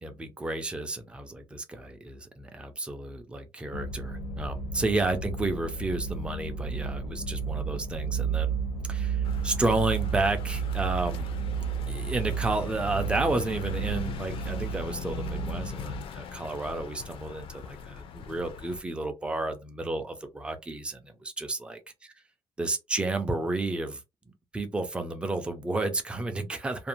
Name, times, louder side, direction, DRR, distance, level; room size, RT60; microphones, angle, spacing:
voice 1, 0.0-8.6 8.9-11.2 11.9-21.8 22.6-24.0 24.5-26.9, right 2 dB, 10° right, 0.4 m, -31 dB
sound 1, 3.7-16.0, right 6 dB, 90° left, 0.8 m, -32 dB
sound 2, 9.2-18.8, left 7 dB, 60° left, 0.4 m, -41 dB
2.5 x 2.0 x 2.9 m
cardioid pair, 175°, 10 cm